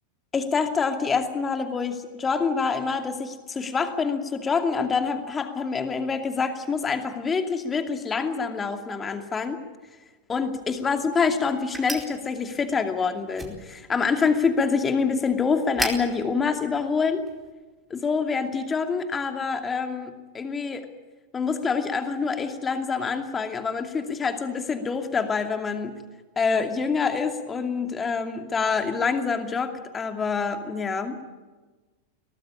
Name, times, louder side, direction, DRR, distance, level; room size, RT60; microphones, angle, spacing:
voice 1, 0.3-9.6 10.3-17.2 17.9-20.9 21.3-25.9 26.4-31.2, left 5 dB, 20° left, 6 dB, 2.6 m, -26 dB
sound 1, 10.4-17.5, right 2 dB, 10° right, 4.6 m, -39 dB
23.5 x 19.0 x 8.6 m, 1.2 s
figure-of-eight pair, 90°, 0 cm